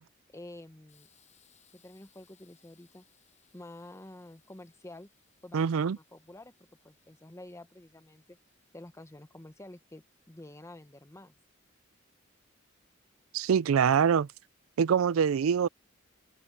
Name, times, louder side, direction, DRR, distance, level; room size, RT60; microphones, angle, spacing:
voice 1, 0.3-1.1 1.7-3.0 3.5-5.1 5.4-6.5 6.8-8.4 8.7-11.4, left 1 dB, 15° left, 1.0 m, -49 dB
Hiss, 0.9-10.8, left 8 dB, 35° left, 7.8 m, -70 dB
voice 2, 5.5-6.0 13.3-14.3 14.8-15.7, right 7 dB, 85° right, 0.4 m, -24 dB
head